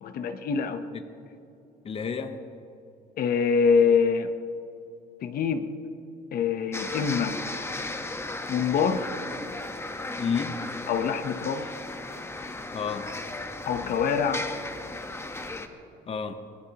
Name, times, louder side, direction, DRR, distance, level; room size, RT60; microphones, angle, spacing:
voice 1, 0.0-0.9 3.2-4.3 5.2-5.7 6.3-7.4 8.5-9.1 10.9-11.7 13.7-14.4, left 6 dB, 60° left, 8 dB, 0.9 m, -25 dB
voice 2, 1.8-2.4 10.2-10.7 12.7-13.1 16.1-16.4, left 6 dB, 35° left, 8 dB, 0.9 m, -31 dB
sound 1, 6.7-15.7, left 2 dB, 15° left, 1.2 m, -36 dB
24.5 x 19.0 x 3.0 m, 2.8 s
cardioid pair, 110°, 17 cm